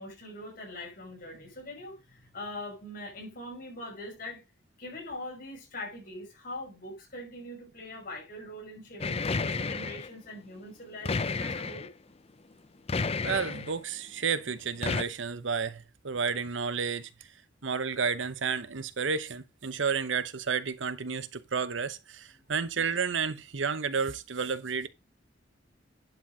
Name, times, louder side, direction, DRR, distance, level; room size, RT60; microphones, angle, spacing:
voice 1, 0.0-4.4 4.8-11.9, left 1 dB, 50° left, 6.4 m, -42 dB
sound 1, 9.0-10.1 11.0-11.9 12.9-13.7 14.8-15.0, left 4 dB, 35° left, 0.6 m, -31 dB
voice 2, 13.2-17.1 17.6-24.9, right 5 dB, 85° right, 0.8 m, -31 dB
11.0 x 4.4 x 5.0 m
head